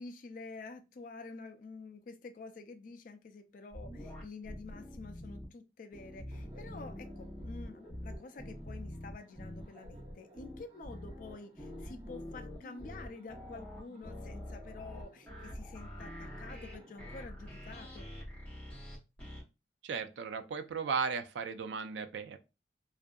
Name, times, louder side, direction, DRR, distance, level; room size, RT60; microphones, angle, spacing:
voice 1, 0.0-18.1, left 3 dB, 45° left, 0.3 m, -49 dB
sound 1, 3.7-5.5 5.9-19.4, left 1 dB, 10° left, 1.0 m, -45 dB
Laughter, 6.3-17.2, right 1 dB, 30° right, 0.6 m, -58 dB
voice 2, 19.8-22.4, right 5 dB, 75° right, 0.3 m, -36 dB
2.6 x 2.4 x 2.2 m
head